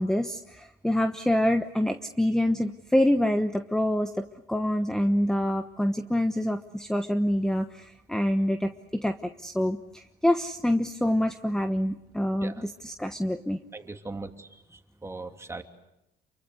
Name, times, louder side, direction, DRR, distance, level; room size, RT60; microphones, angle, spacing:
voice 1, 0.0-13.6, left 1 dB, 5° left, 8 dB, 1.2 m, -26 dB
voice 2, 13.7-15.6, right 3 dB, 15° right, 4 dB, 2.9 m, -40 dB
29.0 x 23.5 x 8.2 m, 0.88 s
cardioid pair, 110°, 17 cm